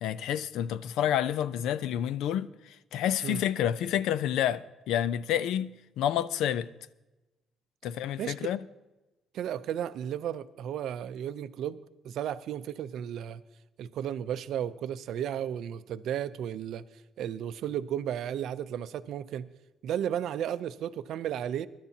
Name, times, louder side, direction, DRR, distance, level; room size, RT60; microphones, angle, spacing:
voice 1, 0.0-6.7 7.8-8.6, left 10 dB, 80° left, 0.5 m, -29 dB
voice 2, 9.3-13.4 13.8-16.8 17.2-19.5 19.8-21.7, right 10 dB, 60° right, 0.5 m, -34 dB
23.5 x 11.5 x 2.8 m
cardioid pair, 180°, 0 cm